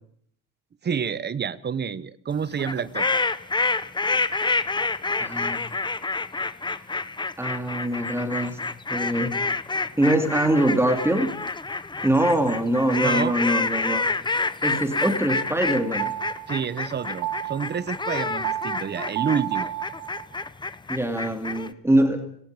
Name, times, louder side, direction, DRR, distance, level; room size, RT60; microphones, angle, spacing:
voice 1, 0.8-3.1 13.0-13.4 16.5-19.7, right 7 dB, 30° right, 17 dB, 1.4 m, -28 dB
sound 1, 2.6-21.7, left 3 dB, 15° left, 1.2 m, -28 dB
voice 2, 5.2-5.8 7.4-8.6 8.9-9.4 10.0-11.3 12.0-14.0 14.6-16.1 20.9-22.3, right 1 dB, 5° right, 6 dB, 3.0 m, -23 dB
sound 2, 15.3-20.4, right 14 dB, 75° right, 1.3 m, -33 dB
30.0 x 19.0 x 5.3 m, 0.65 s
supercardioid pair, 100°, 34 cm